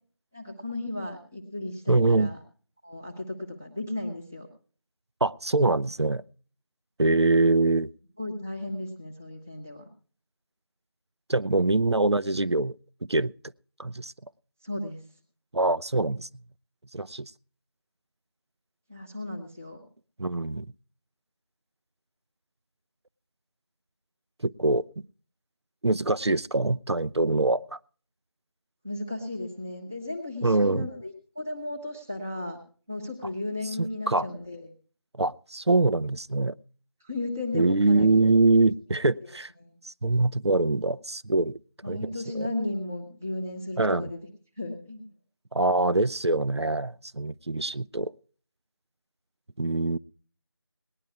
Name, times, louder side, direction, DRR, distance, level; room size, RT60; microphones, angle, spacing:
voice 1, 0.3-2.4 2.8-4.5 8.2-9.9 14.6-15.0 18.9-19.8 28.8-32.6 32.9-34.7 37.0-38.2 39.1-39.3 39.6-39.8 41.8-44.2 44.6-45.0, left 2 dB, 5° right, -1 dB, 0.7 m, -35 dB
voice 2, 1.9-2.3 5.2-6.2 7.0-7.9 11.3-12.8 13.1-13.3 13.8-14.1 15.5-16.3 16.9-17.3 20.2-20.7 24.4-24.8 25.8-27.8 30.4-30.9 33.8-34.3 35.1-36.5 37.5-39.5 39.8-41.5 41.9-42.5 43.8-44.1 45.5-48.1 49.6-50.0, right 2 dB, 80° right, 15 dB, 0.7 m, -24 dB
19.0 x 11.0 x 4.7 m, 0.41 s
figure-of-eight pair, 170°, 14 cm